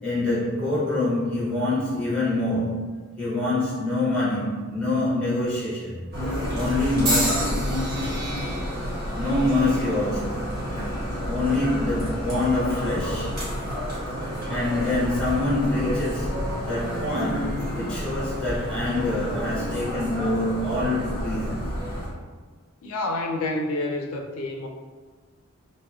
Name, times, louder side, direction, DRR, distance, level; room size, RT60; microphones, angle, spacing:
voice 1, 0.0-2.9 3.2-6.0 6.5-7.6 9.1-10.4 11.2-13.3 14.5-21.6, left 2 dB, 5° left, -8 dB, 0.6 m, -25 dB
sound 1, 6.1-22.1, equal, 45° right, 1.1 m, -29 dB
sound 2, 7.1-11.2 11.9-12.3 13.3-13.5, right 1 dB, 75° right, 0.7 m, -32 dB
voice 2, 22.8-24.7, left 2 dB, 70° left, 2 dB, 0.3 m, -28 dB
2.8 x 2.7 x 2.3 m, 1.4 s
head